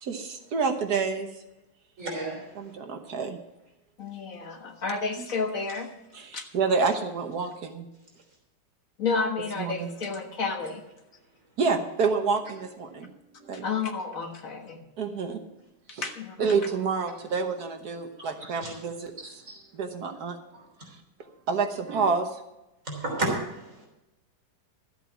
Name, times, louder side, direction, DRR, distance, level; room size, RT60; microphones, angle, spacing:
voice 1, 0.0-1.3 2.6-3.4 6.1-7.9 9.6-9.9 11.6-13.1 13.4-13.6 15.0-15.4 15.9-16.1 16.4-19.1 19.7-20.4 21.5-22.3, right 5 dB, 60° right, 5 dB, 1.5 m, -28 dB
voice 2, 2.0-2.5 18.2-18.7 19.2-19.6 20.5-20.6 22.9-23.9, right 1 dB, 40° right, -2 dB, 3.9 m, -33 dB
voice 3, 4.0-5.9 6.3-6.5 9.0-10.8 13.6-14.8 16.0-16.6, left 4 dB, 50° left, 3 dB, 1.8 m, -31 dB
13.5 x 8.2 x 5.8 m, 0.93 s
omnidirectional pair, 2.0 m